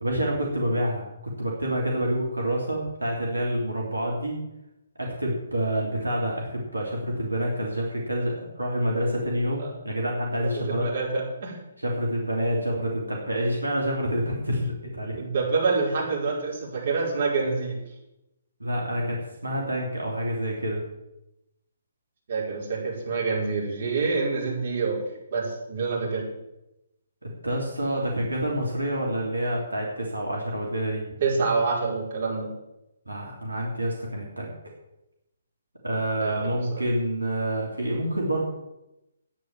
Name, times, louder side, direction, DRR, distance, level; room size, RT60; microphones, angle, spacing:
voice 1, 0.0-4.4 5.0-10.9 11.8-15.2 18.6-20.8 27.2-31.0 33.1-34.5 35.8-38.4, equal, 85° right, -1 dB, 3.0 m, -28 dB
voice 2, 10.4-11.6 15.2-17.8 22.3-25.0 25.3-26.3 31.2-32.5 36.2-36.3 36.7-36.8, right 4 dB, 50° right, -3 dB, 5.4 m, -27 dB
10.5 x 9.7 x 7.4 m, 0.91 s
figure-of-eight pair, 135°, 0 cm